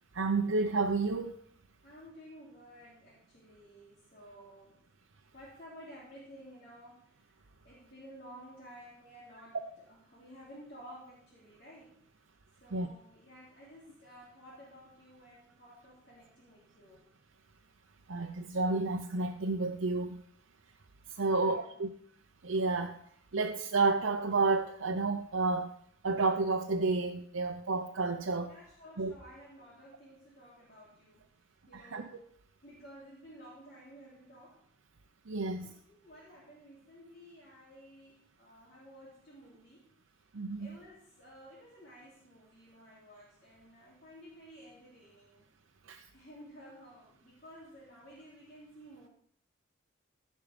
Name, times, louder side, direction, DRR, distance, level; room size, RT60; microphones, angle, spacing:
voice 1, 0.1-1.4 12.7-12.9 18.1-20.2 21.1-21.9 22.4-23.0 23.3-25.7 26.0-28.6 29.0-29.1 31.7-32.2 35.3-35.7 40.3-40.8 45.8-46.1, right 3 dB, 85° right, 2 dB, 0.8 m, -31 dB
voice 2, 1.8-4.8 5.3-9.6 9.8-12.0 12.6-17.1 21.2-21.8 28.5-31.3 31.7-32.1 32.6-34.6 35.6-35.7 36.0-39.9 40.6-45.5 46.1-49.1, equal, 45° left, -8 dB, 3.2 m, -53 dB
15.5 x 5.4 x 5.2 m, 0.63 s
head